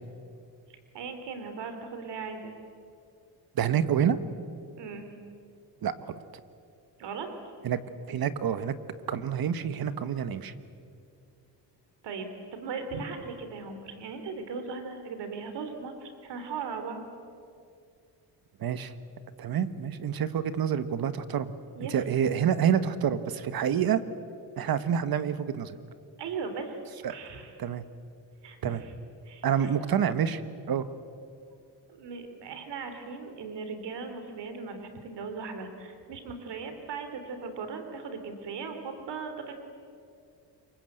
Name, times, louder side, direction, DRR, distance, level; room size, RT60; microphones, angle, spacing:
voice 1, 0.7-2.5 4.8-5.1 7.0-7.3 12.0-17.0 21.7-21.9 26.2-26.8 27.1-27.6 28.4-28.9 29.2-29.7 31.9-39.5, right 5 dB, 80° right, 7 dB, 3.1 m, -38 dB
voice 2, 3.5-4.2 5.8-6.1 7.6-7.8 8.1-8.7 9.1-10.5 18.6-18.9 19.4-21.5 21.9-24.0 24.6-25.7 27.0-27.1 27.6-27.8 28.6-28.8 29.4-30.4 30.7-30.9, right 8 dB, 60° right, 12 dB, 1.5 m, -27 dB
27.5 x 24.0 x 8.0 m, 2.4 s
cardioid pair, 115°, 42 cm